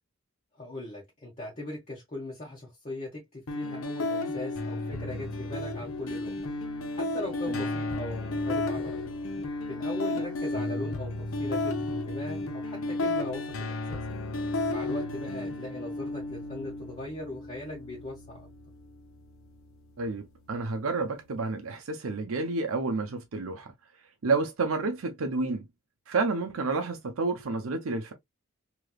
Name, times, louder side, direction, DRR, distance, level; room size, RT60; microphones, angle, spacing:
voice 1, 0.6-6.5 6.9-9.1 9.7-11.1 11.4-14.0 14.7-18.5, left 1 dB, 35° left, 1.0 m, -39 dB
sound 1, 3.5-21.4, left 2 dB, 85° left, 0.7 m, -33 dB
voice 2, 20.0-23.7 24.2-25.6 26.1-28.1, right 3 dB, 85° right, 0.6 m, -30 dB
3.2 x 2.9 x 2.2 m
head